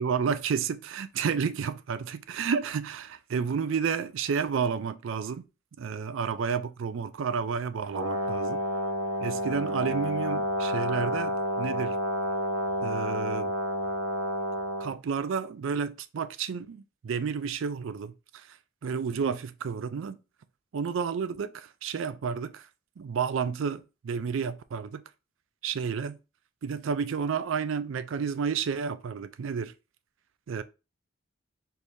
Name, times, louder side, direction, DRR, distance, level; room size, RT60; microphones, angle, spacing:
voice 1, 0.0-5.4 5.8-8.6 9.2-12.0 12.8-13.5 14.8-18.6 18.8-20.2 20.7-22.7 23.0-25.0 25.6-26.2 26.6-29.7 30.5-30.6, right 6 dB, 70° right, 0.4 m, -31 dB
Brass instrument, 7.9-14.9, equal, 85° right, 0.9 m, -30 dB
4.5 x 2.6 x 3.4 m
head